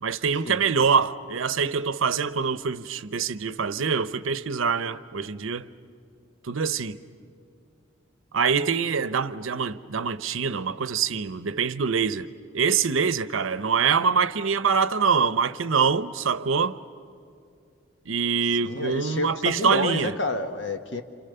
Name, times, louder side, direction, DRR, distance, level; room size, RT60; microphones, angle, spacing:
voice 1, 0.0-5.7 6.4-7.0 8.3-12.3 12.5-16.8 18.1-20.2, right 6 dB, 90° right, 0.7 m, -24 dB
voice 2, 18.6-21.0, left 2 dB, 65° left, 1.3 m, -29 dB
29.5 x 27.0 x 6.8 m
head